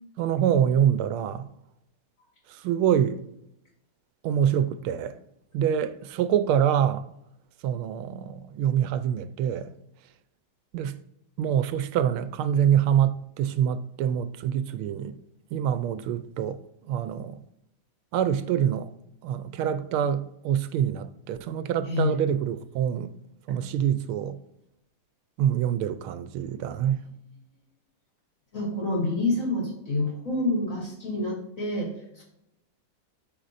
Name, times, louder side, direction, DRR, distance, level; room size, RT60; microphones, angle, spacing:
voice 1, 0.2-1.5 2.6-3.2 4.2-5.2 5.5-7.0 7.6-9.7 10.7-10.9 11.4-15.1 15.5-16.6 16.9-17.4 18.1-18.9 19.2-23.1 23.5-24.4 25.4-27.0, right 9 dB, 85° right, 1.5 m, -25 dB
voice 2, 28.5-32.2, left 2 dB, 40° left, 3.7 m, -28 dB
13.0 x 5.1 x 2.5 m
omnidirectional pair, 2.3 m